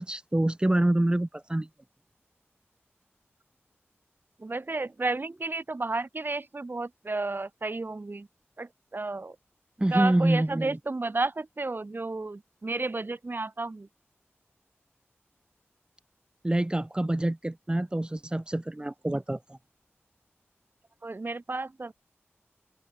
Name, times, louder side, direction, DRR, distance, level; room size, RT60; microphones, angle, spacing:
voice 1, 0.0-1.7 9.8-10.8 16.4-19.4, right 1 dB, 20° right, 1.1 m, -26 dB
voice 2, 4.4-8.3 8.6-9.4 9.9-13.9 21.0-21.9, right 3 dB, 50° right, 7.9 m, -32 dB
open air
wide cardioid pair, 55°, 5 cm